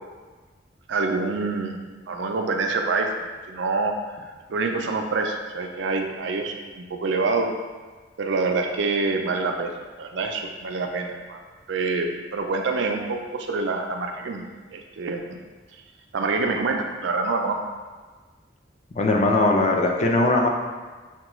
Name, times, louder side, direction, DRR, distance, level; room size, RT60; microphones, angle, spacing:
voice 1, 0.9-1.8 2.1-3.1 3.4-3.9 4.2-7.5 8.2-11.4 11.7-14.4 14.7-15.4 16.1-17.6, right 3 dB, 70° right, 3 dB, 0.4 m, -26 dB
voice 2, 19.0-20.5, left 2 dB, 40° left, 1 dB, 0.4 m, -20 dB
5.8 x 2.3 x 3.0 m, 1.4 s
head